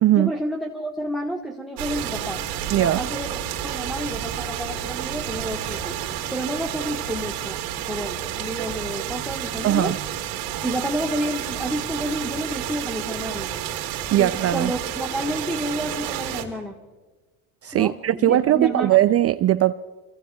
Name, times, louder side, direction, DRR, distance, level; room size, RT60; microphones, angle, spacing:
voice 1, 0.1-2.4 2.8-6.0 6.3-7.6 7.8-9.9 10.6-13.5 14.2-16.8 17.7-19.0, equal, ahead, 1.3 m, -30 dB
sound 1, 1.8-16.4, right 10 dB, 85° right, 2.4 m, -30 dB
voice 2, 2.7-3.0 9.6-10.0 14.1-14.7 17.6-19.7, right 13 dB, 35° right, 0.4 m, -19 dB
25.5 x 23.5 x 2.3 m
supercardioid pair, 90°, 45 cm